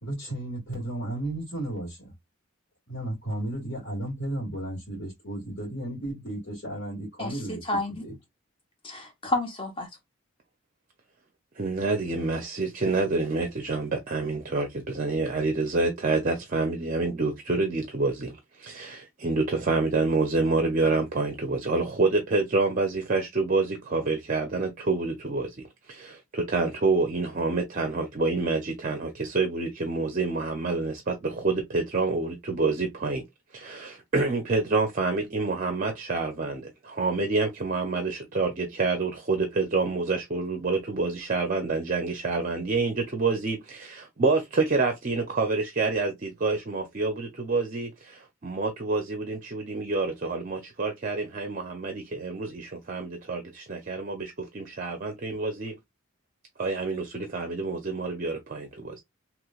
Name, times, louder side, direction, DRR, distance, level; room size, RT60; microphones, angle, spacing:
voice 1, 0.0-2.1 2.9-7.6 7.9-8.1, right 1 dB, 55° left, 2.0 m, -34 dB
voice 2, 7.7-8.0 8.8-9.9, left 2 dB, 25° left, 1.0 m, -30 dB
voice 3, 11.6-33.3 33.5-55.8 56.6-59.0, right 3 dB, 40° right, 0.5 m, -27 dB
3.2 x 3.0 x 2.3 m
head